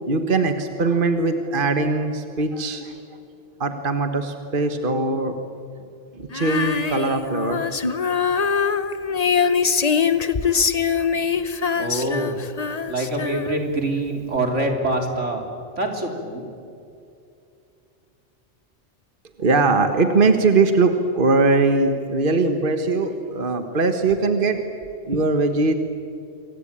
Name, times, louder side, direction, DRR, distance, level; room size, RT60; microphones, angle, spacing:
voice 1, 0.1-2.9 3.6-5.3 6.2-7.8 19.4-24.7 25.0-25.7, right 3 dB, 45° right, 7 dB, 1.6 m, -21 dB
Female singing, 6.3-13.8, left 6 dB, 35° left, 1.0 m, -23 dB
voice 2, 11.7-12.4 12.9-15.4 15.8-16.5, right 1 dB, 85° right, 3 dB, 3.8 m, -25 dB
27.5 x 24.0 x 8.9 m, 2.6 s
omnidirectional pair, 1.2 m